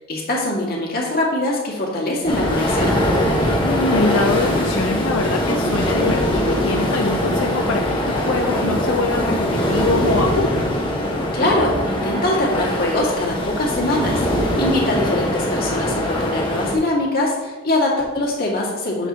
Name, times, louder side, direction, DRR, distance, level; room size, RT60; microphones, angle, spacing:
voice 1, 0.1-3.0 11.3-19.1, left 1 dB, 45° left, -2 dB, 2.0 m, -22 dB
sound 1, 2.3-16.7, left 1 dB, 25° left, 1.3 m, -21 dB
voice 2, 3.6-10.7, left 3 dB, 75° left, 2 dB, 0.6 m, -23 dB
9.9 x 7.1 x 2.9 m, 1.2 s
head